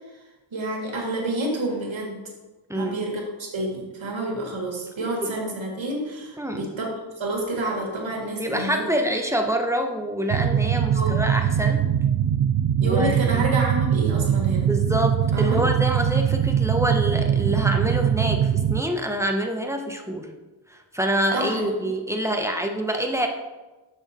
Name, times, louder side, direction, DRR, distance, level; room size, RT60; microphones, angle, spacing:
voice 1, 0.5-2.3 2.7-8.8 10.9-11.2 12.8-14.7 15.3-15.6 21.3-21.9, right 2 dB, 85° right, 0 dB, 1.8 m, -29 dB
voice 2, 6.4-6.7 8.4-11.9 12.8-13.4 14.7-20.3 20.7-23.3, right 1 dB, 5° right, 3 dB, 1.0 m, -26 dB
sound 1, 10.3-18.8, right 9 dB, 50° right, 0.5 m, -22 dB
6.6 x 6.3 x 4.2 m, 1.2 s
cardioid pair, 50°, 45 cm